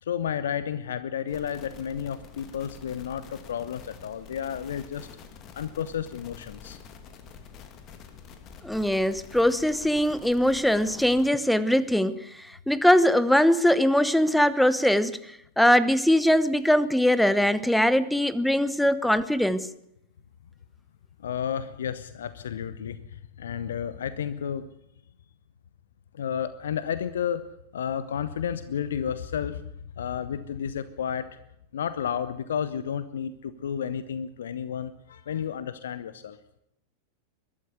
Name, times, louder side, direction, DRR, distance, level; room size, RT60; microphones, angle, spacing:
voice 1, 0.0-5.1 5.5-6.8 21.2-24.7 26.1-27.4 27.7-29.6 30.0-31.3 31.7-36.4, left 8 dB, 65° left, 14 dB, 0.9 m, -32 dB
sound 1, 1.3-11.3, left 6 dB, 35° left, 2.5 m, -47 dB
voice 2, 8.6-19.7, equal, ahead, 16 dB, 1.0 m, -22 dB
22.0 x 13.0 x 9.6 m, 0.77 s
figure-of-eight pair, 90°, 0 cm